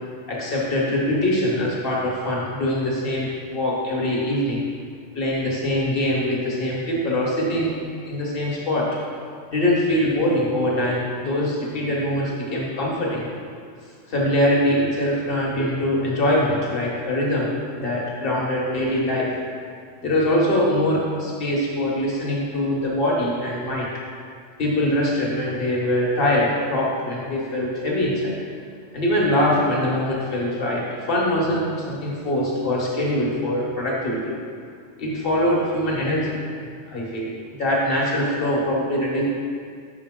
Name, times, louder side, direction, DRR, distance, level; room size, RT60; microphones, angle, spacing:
voice 1, 0.3-4.6 5.1-7.7 8.1-9.0 9.5-13.3 14.0-17.5 17.8-19.3 20.0-23.9 24.6-28.3 28.9-34.4 35.0-36.4 36.9-37.3 37.6-39.2, left 1 dB, 50° left, -4 dB, 1.5 m, -23 dB
6.0 x 5.9 x 3.7 m, 2.1 s
omnidirectional pair, 1.3 m